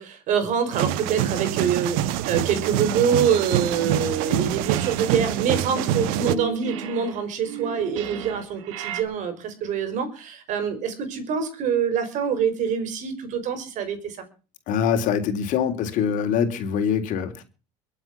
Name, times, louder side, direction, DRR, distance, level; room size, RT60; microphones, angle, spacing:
voice 1, 0.0-14.2, right 7 dB, 55° right, 5.3 m, -25 dB
sound 1, 0.7-6.4, right 12 dB, 70° right, 1.3 m, -25 dB
sound 2, 3.2-4.4 4.6-9.0, right 9 dB, 90° right, 2.3 m, -35 dB
voice 2, 14.7-17.4, left 7 dB, 55° left, 3.5 m, -24 dB
22.5 x 8.1 x 6.0 m
supercardioid pair, 110°, 16 cm